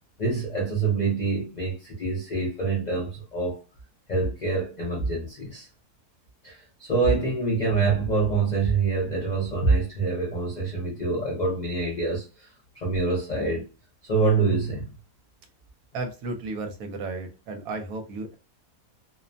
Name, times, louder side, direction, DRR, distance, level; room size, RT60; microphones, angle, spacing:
voice 1, 0.2-3.6 4.1-5.7 6.4-12.5 12.7-13.7 14.0-14.9, right 3 dB, 60° left, 0.4 m, -25 dB
voice 2, 15.9-18.4, right 3 dB, 70° right, 1.0 m, -33 dB
2.7 x 2.1 x 2.5 m
omnidirectional pair, 1.7 m